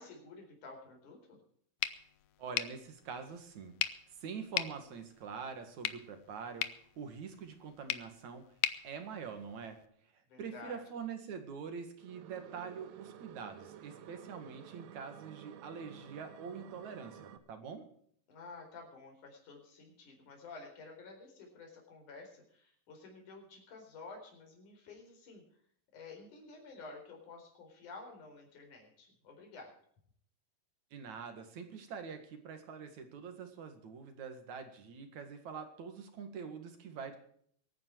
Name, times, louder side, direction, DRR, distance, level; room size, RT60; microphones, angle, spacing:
voice 1, 0.0-1.4 10.3-10.8 18.3-25.4 25.9-29.7, left 3 dB, 55° left, 2 dB, 5.7 m, -51 dB
sound 1, 1.8-9.9, left 13 dB, 75° left, 2.1 m, -41 dB
voice 2, 2.4-3.8 4.2-6.7 7.0-8.4 8.8-9.8 10.4-17.8 30.9-37.2, right 6 dB, 55° right, 7 dB, 3.0 m, -45 dB
sound 2, 12.0-17.4, right 10 dB, 85° right, 2.9 m, -52 dB
24.0 x 9.5 x 4.7 m, 0.62 s
omnidirectional pair, 4.3 m